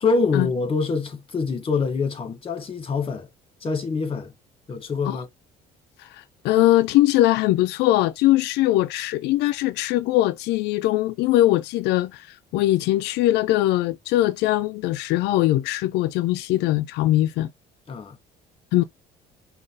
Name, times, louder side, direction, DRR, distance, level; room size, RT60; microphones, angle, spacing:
voice 1, 0.0-3.3 3.6-4.3 4.7-5.3 17.9-18.2, left 4 dB, 35° left, 1.6 m, -25 dB
voice 2, 6.0-17.5 18.7-18.8, left 15 dB, 85° left, 0.4 m, -21 dB
5.2 x 2.4 x 3.8 m
cardioid pair, 110°, 17 cm